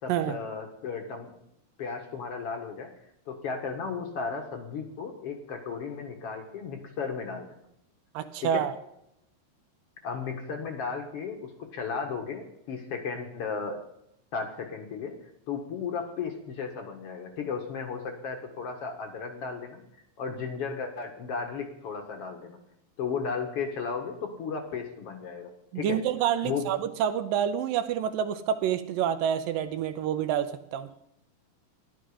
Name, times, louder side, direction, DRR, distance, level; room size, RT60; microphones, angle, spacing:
voice 1, 0.0-1.3 1.8-2.9 3.3-7.6 8.4-8.6 10.0-13.8 14.3-15.1 15.5-19.8 20.2-22.6 23.0-25.5 25.7-26.0 26.4-26.7, left 5 dB, 55° left, 4 dB, 1.8 m, -34 dB
voice 2, 8.1-8.7 25.8-30.9, right 9 dB, 75° right, 10 dB, 2.2 m, -28 dB
15.0 x 11.5 x 5.0 m, 0.79 s
omnidirectional pair, 4.7 m